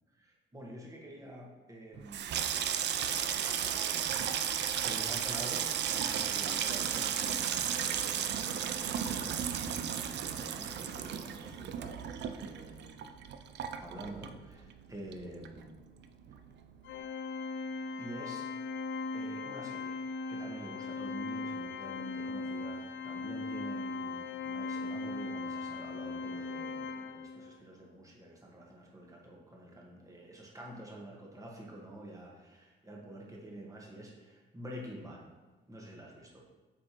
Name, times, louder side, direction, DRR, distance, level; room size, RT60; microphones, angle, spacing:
voice 1, 0.2-2.7 3.3-13.1 13.8-15.7 18.0-18.5 19.1-20.0 20.3-35.2 35.7-36.4, right 1 dB, 15° right, -2 dB, 1.5 m, -48 dB
Water tap faucet / Sink (filling or washing), 2.0-14.8 15.1-15.8 16.0-16.4, right 9 dB, 60° right, 0.4 m, -34 dB
Organ, 16.8-27.6, left 3 dB, 70° left, 0.5 m, -38 dB
7.5 x 4.3 x 3.1 m, 1.2 s
cardioid pair, 90°, 20 cm